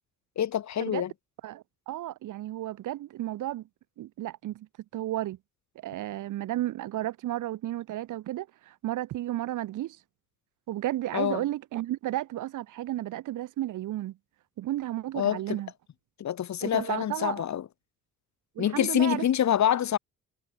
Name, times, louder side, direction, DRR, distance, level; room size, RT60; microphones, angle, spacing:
voice 1, 0.3-1.1 11.1-11.5 15.1-15.6 16.2-17.7 18.6-20.0, left 10 dB, 65° left, 6.7 m, -26 dB
voice 2, 1.4-3.6 4.0-4.7 4.9-5.4 5.8-10.0 10.7-14.2 14.6-15.7 16.6-17.4 18.6-19.2, right 14 dB, 85° right, 6.4 m, -33 dB
cardioid pair, 90°, 30 cm